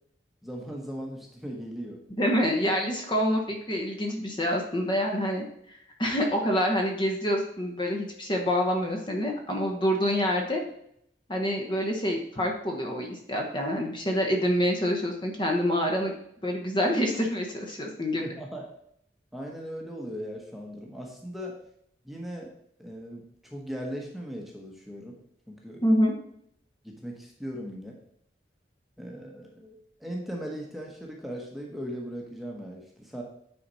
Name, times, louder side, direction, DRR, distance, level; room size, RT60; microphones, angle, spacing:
voice 1, 0.4-2.0 18.2-18.7 19.3-21.6 22.0-22.5 22.8-25.2 25.5-25.8 26.8-28.0 29.0-33.2, equal, ahead, -1 dB, 1.1 m, -38 dB
voice 2, 2.1-10.6 11.3-16.1 16.4-18.2 25.8-26.1, equal, 25° left, 2 dB, 1.1 m, -27 dB
9.3 x 4.3 x 4.1 m, 0.70 s
head